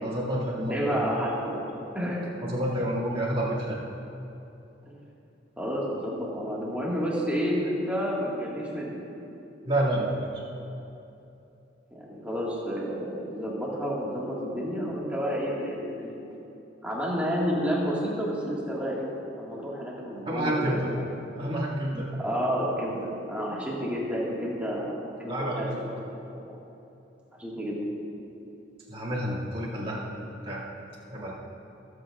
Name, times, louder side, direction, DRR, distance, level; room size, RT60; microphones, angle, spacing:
voice 1, 0.0-1.0 2.4-3.8 9.6-10.3 20.3-20.9 21.3-22.1 25.2-25.8 28.9-30.6 31.1-31.3, right 1 dB, 30° right, -7 dB, 2.4 m, -29 dB
voice 2, 0.7-1.6 1.9-2.3 4.9-5.0 5.6-9.0 11.9-16.2 16.8-19.1 19.4-20.8 22.2-25.7 26.4-26.6 27.4-27.8, equal, 10° right, -5 dB, 1.8 m, -30 dB
23.5 x 8.4 x 2.5 m, 2.9 s
head